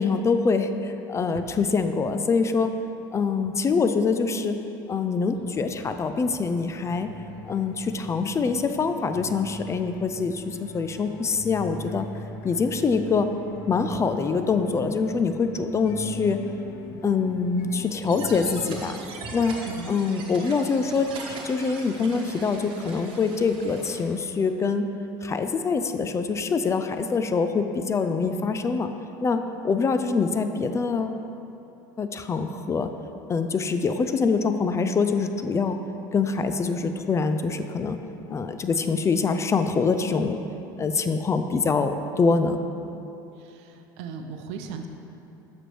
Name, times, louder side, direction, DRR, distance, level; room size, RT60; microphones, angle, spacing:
voice 1, 0.0-2.7 3.1-4.6 4.9-7.1 7.4-12.1 12.4-13.3 13.7-16.4 17.0-19.0 19.3-19.5 19.9-21.1 21.4-24.8 25.2-28.9 29.2-31.2 32.0-32.9 33.3-35.8 36.1-38.0 38.3-40.4 40.8-42.6, left 4 dB, 25° left, 8 dB, 0.4 m, -24 dB
sound 1, 5.3-18.8, left 3 dB, 70° left, 0.8 m, -43 dB
sound 2, 18.0-24.0, right 3 dB, 50° right, 1.2 m, -40 dB
voice 2, 19.6-20.3 43.4-44.9, right 6 dB, 65° right, 6 dB, 0.6 m, -38 dB
7.4 x 6.1 x 3.3 m, 2.8 s
hypercardioid pair, 80°, 11 cm